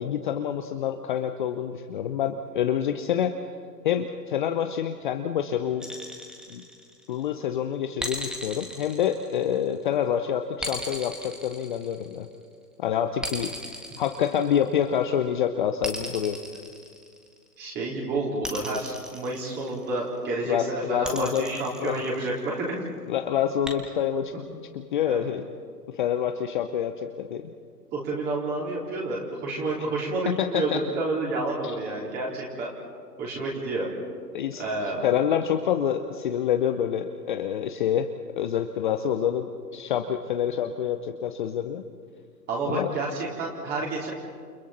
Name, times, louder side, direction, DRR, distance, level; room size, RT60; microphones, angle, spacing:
voice 1, 0.0-3.3 3.8-5.9 6.5-6.6 7.1-12.3 12.8-16.4 20.4-21.4 21.8-22.0 23.1-24.4 24.7-25.5 25.9-27.4 30.4-30.8 31.6-31.8 34.3-34.6 35.0-38.1 38.4-41.8 42.7-42.9, left 9 dB, 30° left, 7 dB, 0.8 m, -27 dB
sound 1, 5.8-7.2 8.0-9.8 10.6-12.3 13.2-14.9 15.8-17.5 18.4-20.0 21.0-22.5 23.6-23.7, equal, ahead, 1.7 m, -37 dB
voice 2, 17.6-22.7 25.0-25.3 27.9-32.7 33.2-33.9 34.6-35.1 42.5-44.1, right 2 dB, 20° right, -3 dB, 3.8 m, -29 dB
30.0 x 29.0 x 4.3 m, 2.1 s
figure-of-eight pair, 135°, 49 cm